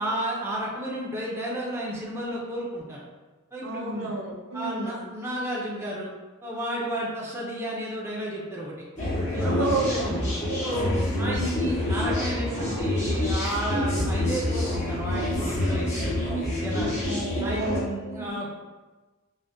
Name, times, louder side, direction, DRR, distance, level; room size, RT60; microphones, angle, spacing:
voice 1, 0.0-3.0 3.5-4.1 4.5-6.1 6.4-8.7 9.3-9.8 10.0-10.2 10.6-17.0 17.4-18.5, right 1 dB, 10° right, -5 dB, 0.4 m, -32 dB
voice 2, 3.6-5.0 9.4-10.9 17.0-18.3, right 2 dB, 65° right, -1 dB, 0.5 m, -31 dB
sound 1, 9.0-17.8, left 1 dB, 35° left, 0.8 m, -27 dB
3.5 x 2.1 x 2.6 m, 1.2 s
head